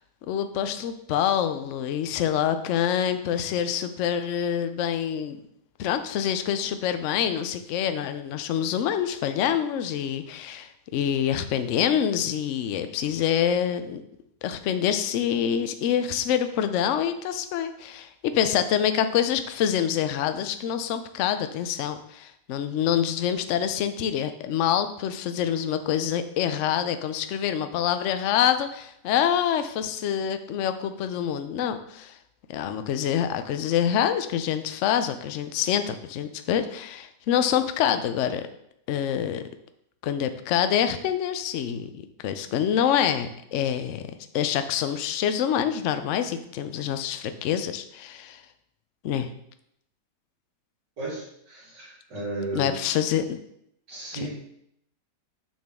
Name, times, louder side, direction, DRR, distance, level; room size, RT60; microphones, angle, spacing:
voice 1, 0.3-5.4 5.8-14.0 14.4-32.2 32.5-38.5 38.9-39.4 40.0-41.9 42.2-44.1 44.3-48.4 49.0-49.3 52.6-53.4 54.2-54.3, left 9 dB, 75° left, 9 dB, 0.7 m, -26 dB
voice 2, 51.0-52.8 53.9-54.3, right 2 dB, 70° right, -7 dB, 3.1 m, -34 dB
6.4 x 6.0 x 3.5 m, 0.75 s
omnidirectional pair, 1.9 m